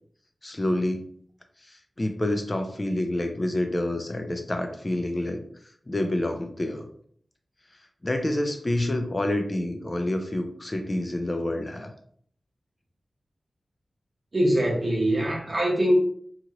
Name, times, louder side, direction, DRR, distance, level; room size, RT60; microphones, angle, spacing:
voice 1, 0.4-1.0 1.7-5.4 5.9-6.8 8.0-11.9, left 1 dB, 25° left, 5 dB, 0.4 m, -28 dB
voice 2, 14.3-15.9, right 1 dB, 40° right, -3 dB, 0.9 m, -23 dB
2.9 x 2.8 x 2.5 m, 0.62 s
wide cardioid pair, 100°, 0 cm